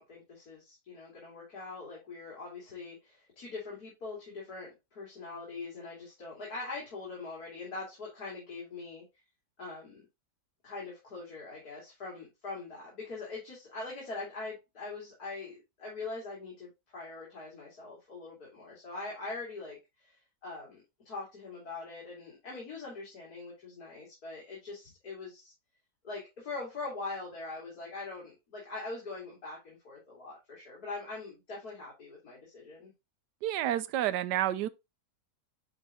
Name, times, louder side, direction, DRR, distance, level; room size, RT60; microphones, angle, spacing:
voice 1, 0.0-9.0 9.6-10.0 10.6-20.2 20.4-25.5 26.0-32.9, left 3 dB, 65° left, 3.4 m, -42 dB
voice 2, 33.4-34.7, right 12 dB, 90° right, 1.2 m, -29 dB
10.5 x 4.3 x 2.5 m
omnidirectional pair, 1.8 m